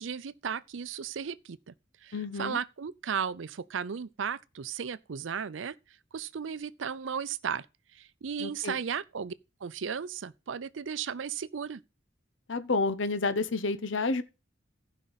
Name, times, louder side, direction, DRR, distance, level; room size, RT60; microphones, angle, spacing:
voice 1, 0.0-1.7 2.0-5.8 6.1-7.7 7.9-9.3 9.6-11.8, right 7 dB, 90° right, 0.5 m, -35 dB
voice 2, 2.1-2.6 8.4-8.8 12.5-14.2, left 3 dB, 85° left, 0.9 m, -30 dB
15.0 x 5.4 x 4.0 m
head